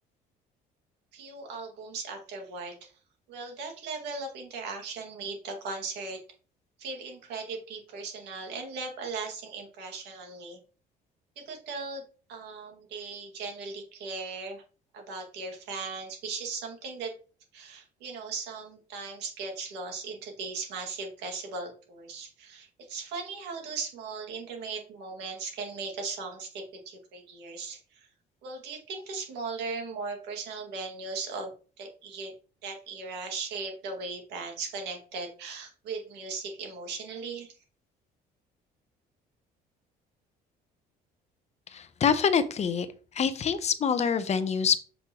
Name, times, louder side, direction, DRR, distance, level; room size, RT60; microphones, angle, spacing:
voice 1, 1.1-2.9 3.3-6.2 6.8-10.6 11.4-12.0 12.3-14.6 14.9-17.1 17.5-28.1 28.4-31.5 31.8-32.3 32.6-37.5, right 4 dB, 85° right, 2 dB, 2.2 m, -38 dB
voice 2, 41.7-42.9 43.1-44.8, left 6 dB, 40° left, 12 dB, 0.8 m, -25 dB
7.6 x 5.2 x 3.0 m, 0.38 s
cardioid pair, 110°, 17 cm